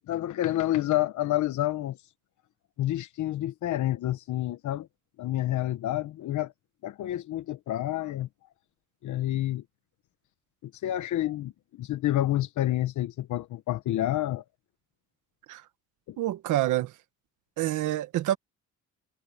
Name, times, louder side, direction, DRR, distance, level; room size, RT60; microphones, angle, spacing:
voice 1, 0.1-2.0 2.8-4.9 5.2-6.5 6.8-8.3 9.0-9.6 10.6-14.4 16.1-16.2, left 14 dB, 75° left, 1.1 m, -29 dB
voice 2, 16.2-16.9 17.6-18.4, right 14 dB, 85° right, 1.4 m, -27 dB
cardioid pair, 90°, 30 cm